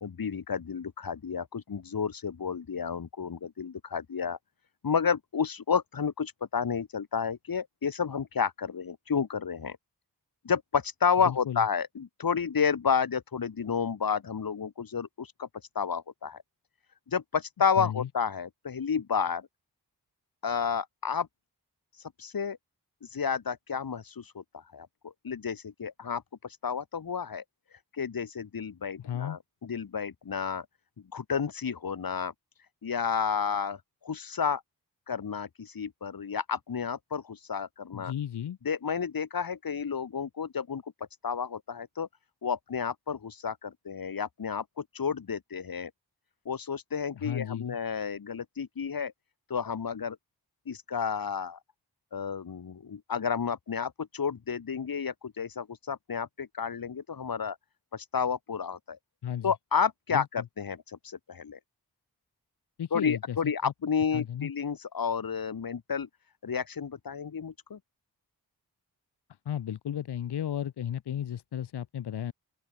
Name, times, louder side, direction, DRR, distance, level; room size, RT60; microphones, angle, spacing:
voice 1, 0.0-4.4 4.8-9.8 10.4-15.5 15.7-16.4 17.1-19.5 20.4-21.3 21.9-22.6 23.0-27.4 27.9-30.6 31.1-32.3 32.8-34.6 35.1-38.1 38.6-40.8 41.2-42.1 42.4-45.9 46.4-49.1 49.5-50.2 50.7-51.6 52.1-57.6 57.9-59.0 59.4-61.6 62.9-66.1 66.4-67.8, left 6 dB, 60° left, 1.6 m, -31 dB
voice 2, 11.3-11.6 17.8-18.1 29.0-29.4 37.9-38.6 47.1-47.8 59.2-59.5 60.1-60.3 62.8-63.4 63.6-63.7 64.1-64.5 69.5-72.3, left 10 dB, 80° left, 0.9 m, -34 dB
open air
cardioid pair, 40°, 40 cm